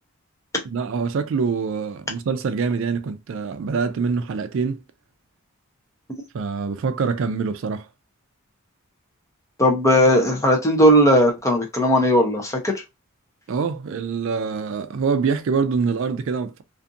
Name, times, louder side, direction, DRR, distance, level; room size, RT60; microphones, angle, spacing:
voice 1, 0.6-4.8 6.3-7.9 13.5-16.6, right 5 dB, 60° right, 0.3 m, -25 dB
voice 2, 9.6-12.8, equal, 15° left, 0.6 m, -17 dB
2.5 x 2.5 x 2.5 m
head